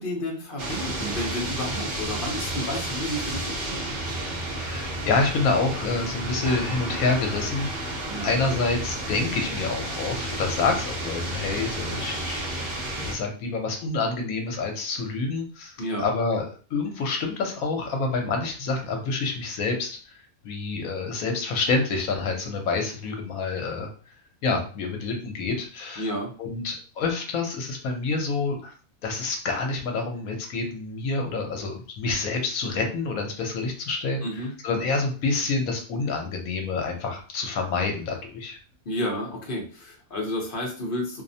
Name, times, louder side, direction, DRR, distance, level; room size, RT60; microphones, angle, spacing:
voice 1, 0.0-4.0 8.1-8.3 15.8-16.0 26.0-26.3 34.2-34.5 38.9-41.2, left 1 dB, 50° left, -1 dB, 0.7 m, -31 dB
sound 1, 0.6-13.1, right 1 dB, 45° right, 0.9 m, -31 dB
voice 2, 4.5-23.9 24.4-26.1 26.4-28.7 29.0-38.6, left 3 dB, 70° left, 2 dB, 1.0 m, -28 dB
2.7 x 2.0 x 2.6 m, 0.39 s
omnidirectional pair, 1.6 m